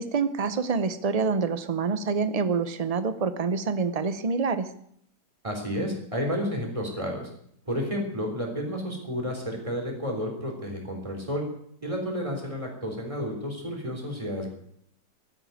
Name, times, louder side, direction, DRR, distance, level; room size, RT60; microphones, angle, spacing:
voice 1, 0.0-4.7, right 5 dB, 80° right, 12 dB, 0.3 m, -26 dB
voice 2, 5.4-7.3 7.7-11.4 11.8-14.5, equal, 20° right, 1 dB, 3.9 m, -31 dB
14.0 x 9.4 x 9.2 m, 0.69 s
omnidirectional pair, 1.8 m